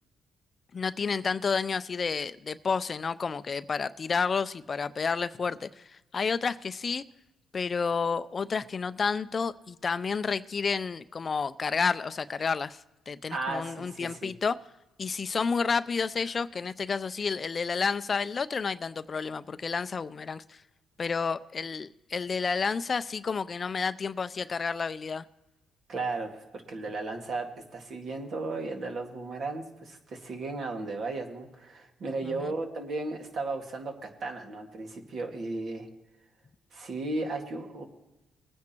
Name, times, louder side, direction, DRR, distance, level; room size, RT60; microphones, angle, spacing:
voice 1, 0.7-7.0 7.5-12.8 13.1-14.6 15.0-20.6 21.0-25.3 32.2-32.4, left 5 dB, 40° left, 0.4 m, -30 dB
voice 2, 13.3-14.3 25.9-27.5 27.7-35.9 36.7-37.8, right 3 dB, 60° right, 2.0 m, -35 dB
21.5 x 9.5 x 3.0 m
cardioid pair, 90°, 0 cm